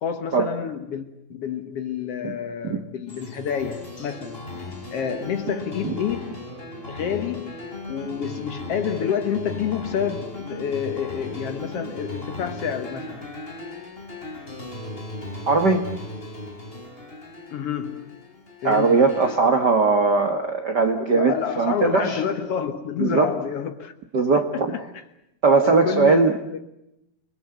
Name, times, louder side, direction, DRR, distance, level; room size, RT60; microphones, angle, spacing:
voice 1, 0.0-4.4 4.9-6.4 6.9-7.5 7.9-13.3 17.5-18.3 18.6-19.0 20.9-23.9 24.3-25.0 25.6-26.6, left 8 dB, 85° left, 1.3 m, -29 dB
sound 1, 3.1-19.3, left 1 dB, 15° left, 4.1 m, -37 dB
voice 2, 15.5-15.8 18.6-22.2 23.0-23.3 24.1-24.7 25.4-26.3, right 4 dB, 70° right, 0.9 m, -19 dB
29.5 x 20.5 x 7.9 m
omnidirectional pair, 4.6 m